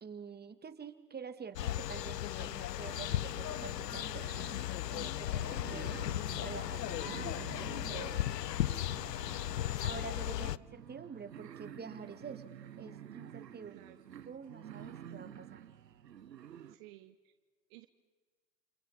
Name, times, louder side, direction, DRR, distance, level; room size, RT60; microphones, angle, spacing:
voice 1, 0.0-4.2 4.9-6.1 6.4-8.3 9.8-13.8 14.3-15.6, right 6 dB, 20° right, 9 dB, 2.1 m, -47 dB
sound 1, 1.6-10.6, left 13 dB, 85° left, 0.6 m, -36 dB
sound 2, 2.8-16.8, right 9 dB, 85° right, 1.1 m, -50 dB
voice 2, 10.3-10.7 12.8-13.2 13.7-14.1 16.7-17.3 17.7-17.9, right 17 dB, 55° right, 9 dB, 1.4 m, -57 dB
29.5 x 28.5 x 4.3 m, 1.4 s
figure-of-eight pair, 85°, 48 cm